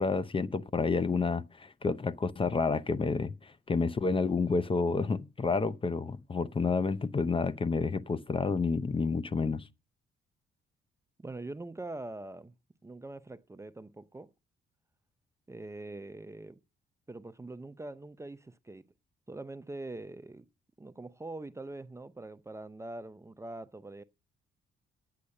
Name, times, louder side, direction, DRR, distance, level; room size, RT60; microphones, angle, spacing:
voice 1, 0.0-9.7, left 4 dB, 25° left, 0.6 m, -29 dB
voice 2, 11.2-12.5 12.8-14.3 15.5-16.6 17.1-18.9 19.3-20.5 20.8-24.0, right 2 dB, 15° right, 0.6 m, -43 dB
9.7 x 8.5 x 6.5 m
cardioid pair, 90°, 20 cm